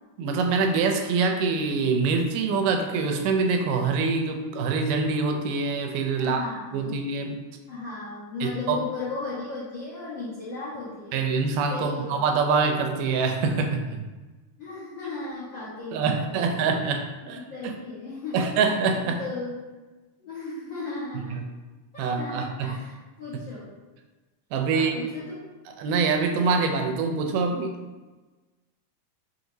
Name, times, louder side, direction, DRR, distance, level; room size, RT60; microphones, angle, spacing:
voice 1, 0.2-6.4 6.7-7.4 8.4-8.8 11.1-14.0 15.9-17.7 18.3-19.2 21.3-21.4 22.0-22.7 24.5-25.0 25.8-27.8, right 4 dB, 90° right, 4 dB, 2.2 m, -25 dB
voice 2, 6.2-7.0 7.7-11.2 11.7-12.1 14.6-16.7 17.2-18.4 19.0-19.5 20.2-21.4 21.9-23.7 24.7-25.4, left 3 dB, 85° left, -10 dB, 1.0 m, -36 dB
5.7 x 2.9 x 2.6 m, 1.2 s
omnidirectional pair, 3.7 m